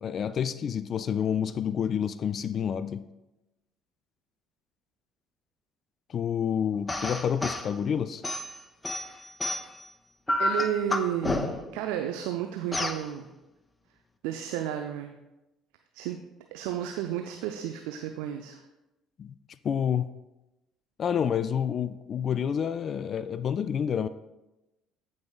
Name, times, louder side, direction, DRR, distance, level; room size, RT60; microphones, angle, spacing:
voice 1, 0.0-3.1 6.1-8.2 19.2-19.4 19.6-20.1 21.0-24.1, left 8 dB, 45° left, 0.3 m, -28 dB
sound 1, 6.9-7.7 8.2-9.8 10.3-11.8 12.7-13.0, left 2 dB, 15° left, 0.7 m, -30 dB
voice 2, 10.4-13.3 14.2-15.2 15.9-16.2 16.5-18.6, right 10 dB, 65° right, 0.5 m, -32 dB
13.5 x 5.3 x 2.3 m
figure-of-eight pair, 55°, 0 cm